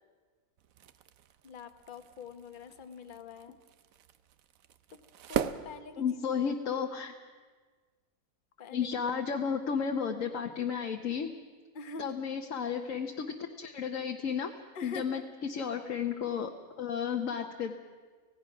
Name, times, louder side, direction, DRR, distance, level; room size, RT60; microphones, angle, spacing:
sound 1, 0.6-6.6, right 9 dB, 65° right, 1.1 m, -40 dB
voice 1, 1.4-3.6 5.3-6.0 8.6-8.9 11.7-12.1 14.7-15.2 16.8-16.9 17.3-17.5, left 5 dB, 35° left, 8 dB, 1.1 m, -45 dB
voice 2, 6.0-7.1 8.7-11.3 12.0-14.5 14.8-17.7, left 7 dB, 60° left, 3 dB, 1.3 m, -33 dB
25.5 x 17.0 x 6.0 m, 1.5 s
omnidirectional pair, 1.6 m